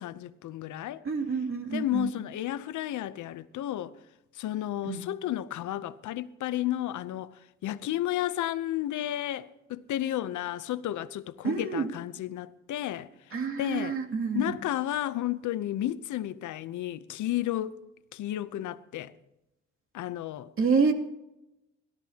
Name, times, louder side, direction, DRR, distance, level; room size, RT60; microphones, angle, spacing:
voice 1, 0.0-1.0 1.7-3.9 4.3-13.1 13.6-14.0 14.3-17.8 18.1-19.1 19.9-20.5, left 13 dB, 75° left, 0.8 m, -32 dB
voice 2, 1.0-2.1 4.8-5.1 11.4-11.9 13.3-14.6 20.6-20.9, right 5 dB, 45° right, 2.7 m, -28 dB
29.5 x 13.0 x 2.9 m
cardioid pair, 90°, 30 cm